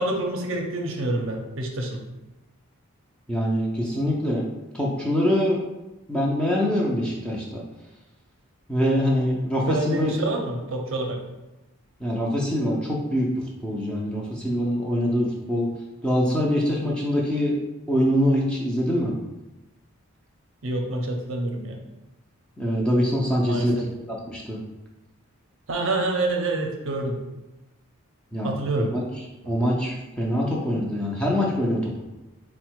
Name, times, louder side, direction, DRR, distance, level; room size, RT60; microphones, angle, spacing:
voice 1, 0.0-2.0 9.7-11.2 20.6-21.8 23.5-23.9 25.7-27.2 28.4-28.9 29.4-29.5, right 2 dB, 60° right, 2 dB, 0.6 m, -27 dB
voice 2, 3.3-4.4 4.7-5.6 6.1-7.6 8.7-10.1 12.0-13.3 13.6-15.7 16.0-17.6 17.9-19.1 22.6-24.6 28.3-28.5 28.8-29.0 29.5-32.0, equal, 5° left, -4 dB, 0.4 m, -24 dB
3.9 x 2.1 x 4.5 m, 1.0 s
head